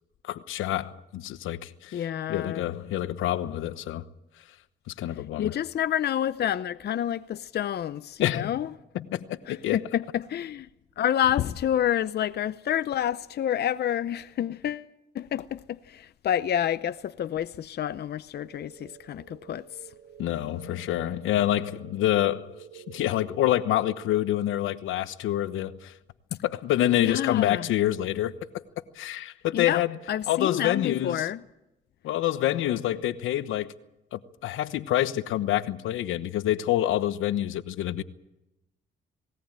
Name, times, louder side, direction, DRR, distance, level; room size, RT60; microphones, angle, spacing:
voice 1, 0.3-2.0 2.3-4.1 5.0-5.5 8.2-8.6 8.9-9.8 20.2-22.5 22.7-25.9 26.4-28.4 29.0-30.0 30.3-31.3 32.0-33.7 34.1-38.0, left 13 dB, 85° left, 1.1 m, -27 dB
voice 2, 1.9-2.7 5.4-8.7 9.5-10.7 11.0-14.9 15.1-19.6 27.0-27.7 29.5-29.8 30.1-31.4, left 10 dB, 55° left, 0.7 m, -28 dB
sound 1, 18.3-24.0, right 8 dB, 70° right, 6.5 m, -49 dB
19.5 x 18.0 x 8.9 m
cardioid pair, 90°, 20 cm